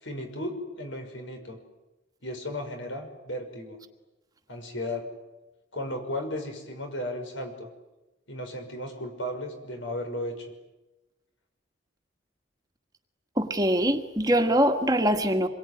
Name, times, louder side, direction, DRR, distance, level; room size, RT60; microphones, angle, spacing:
voice 1, 0.0-1.6 2.2-3.8 4.5-5.1 5.7-7.7 8.3-10.5, left 1 dB, 75° left, 5 dB, 5.9 m, -35 dB
voice 2, 13.4-15.5, equal, 20° right, 5 dB, 1.6 m, -23 dB
26.5 x 22.5 x 9.8 m, 1.0 s
head